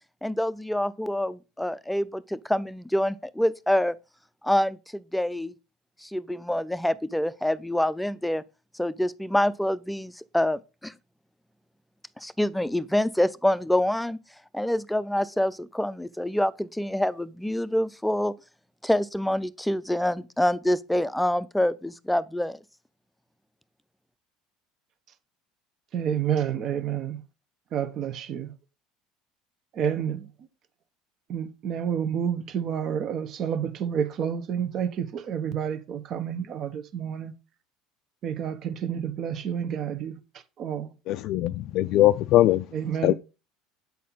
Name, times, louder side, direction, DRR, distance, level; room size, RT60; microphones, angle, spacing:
voice 1, 0.2-4.0 4.4-5.5 6.0-8.4 8.8-10.9 12.2-14.2 14.5-18.3 18.8-22.6, left 1 dB, 5° left, 0.5 m, -26 dB
voice 2, 25.9-27.2 27.7-28.5 29.7-30.3 31.3-37.3 38.2-40.2 40.6-40.9 42.7-43.1, right 8 dB, 50° right, 1.1 m, -29 dB
voice 3, 41.1-42.6 43.0-43.1, left 14 dB, 60° left, 0.3 m, -21 dB
8.4 x 4.2 x 4.0 m
hypercardioid pair, 75°, 0 cm